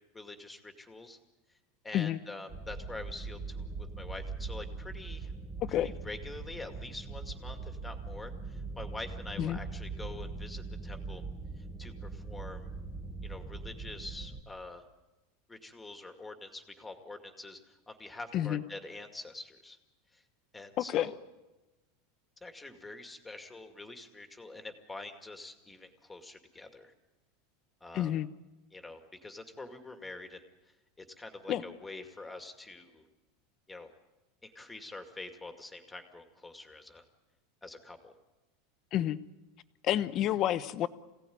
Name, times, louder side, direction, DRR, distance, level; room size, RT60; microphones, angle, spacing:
voice 1, 0.1-1.2 1.5-1.6 1.8-5.3 5.7-11.2 11.6-12.7 13.2-14.8 15.5-19.8 20.1-20.2 20.5-21.1 22.4-26.9 27.8-28.1 28.7-33.0 33.7-33.9 34.4-37.0 37.6-38.1, left 2 dB, 10° left, 5 dB, 2.2 m, -46 dB
sound 1, 2.5-14.4, right 4 dB, 15° right, 1.7 m, -41 dB
voice 2, 5.6-5.9 9.4-9.6 18.3-18.6 20.8-21.1 27.9-28.3 31.5-31.6 38.9-39.2 39.8-40.9, left 12 dB, 35° left, 12 dB, 1.0 m, -29 dB
26.5 x 17.0 x 9.4 m, 1.1 s
supercardioid pair, 150°, 0 cm